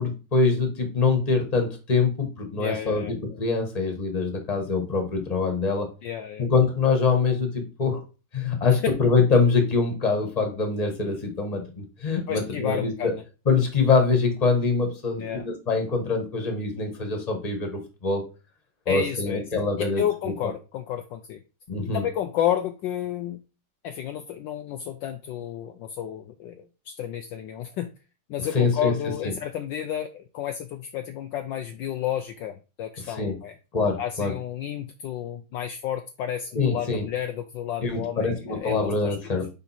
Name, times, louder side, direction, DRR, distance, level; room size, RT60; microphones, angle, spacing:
voice 1, 0.0-5.9 6.4-8.0 8.3-13.1 13.4-18.3 18.8-20.3 21.7-22.0 28.5-28.9 29.2-29.3 33.2-33.4 33.7-34.3 36.5-37.1 37.8-39.5, left 4 dB, 20° left, 3 dB, 1.4 m, -24 dB
voice 2, 2.6-3.1 6.0-6.5 12.3-13.2 15.1-15.5 18.9-19.4 20.0-21.4 21.8-23.4 23.8-27.9 28.3-33.5 34.0-39.4, left 10 dB, 75° left, 7 dB, 1.1 m, -31 dB
5.3 x 5.0 x 4.3 m, 0.31 s
omnidirectional pair, 2.3 m